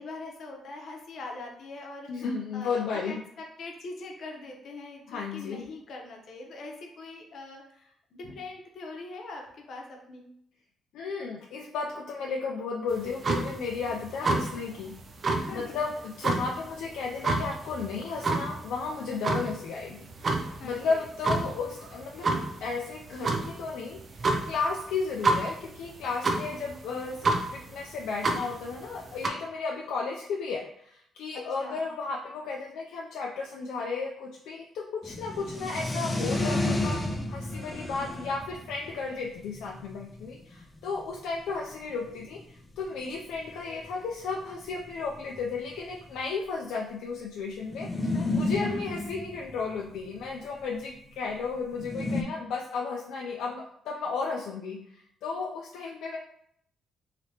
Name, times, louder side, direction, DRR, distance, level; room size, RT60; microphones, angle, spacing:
voice 1, 0.0-2.2 2.5-3.2 3.6-10.3 14.2-14.3 15.4-15.7 20.6-21.1 31.6-31.9 48.1-48.3 48.6-48.8, left 3 dB, 65° left, 1 dB, 0.8 m, -42 dB
voice 2, 2.1-3.2 5.1-5.6 10.9-14.9 15.5-22.3 22.6-56.2, left 4 dB, 85° left, -1 dB, 0.4 m, -34 dB
sound 1, 12.9-29.3, right 2 dB, 45° right, 0.4 m, -31 dB
sound 2, 35.0-41.2 41.8-41.9 42.1-42.2 42.3-42.6 43.5-43.6 43.8-43.9 44.7-46.2 47.7-50.3 51.7-52.2, left 2 dB, 20° left, 0.4 m, -31 dB
3.2 x 2.8 x 2.8 m, 0.69 s
cardioid pair, 90°, 0 cm